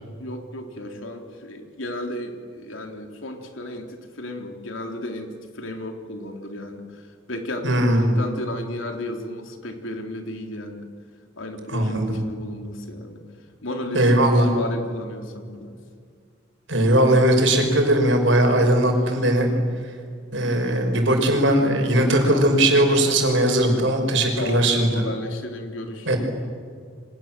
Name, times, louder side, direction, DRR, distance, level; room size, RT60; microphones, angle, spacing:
voice 1, 0.2-10.9 11.4-13.2 13.6-15.8 19.5-19.8 22.2-22.5 24.4-26.2, left 1 dB, 80° left, 4 dB, 3.6 m, -34 dB
voice 2, 7.6-8.1 11.7-12.2 13.9-14.5 16.7-19.5 20.3-25.1 26.1-26.2, right 1 dB, 70° right, 3 dB, 5.9 m, -19 dB
29.0 x 25.0 x 7.7 m, 2.1 s
head